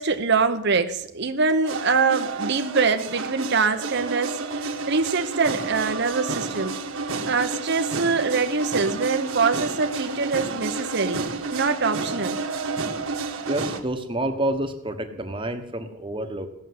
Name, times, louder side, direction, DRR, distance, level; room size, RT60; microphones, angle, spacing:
voice 1, 0.0-6.8 7.3-12.4, right 4 dB, 50° right, 7 dB, 0.9 m, -24 dB
sound 1, 1.6-13.8, right 3 dB, 70° right, 1.7 m, -30 dB
voice 2, 13.5-16.5, right 1 dB, 25° right, 6 dB, 1.3 m, -28 dB
17.0 x 7.0 x 9.5 m, 0.76 s
head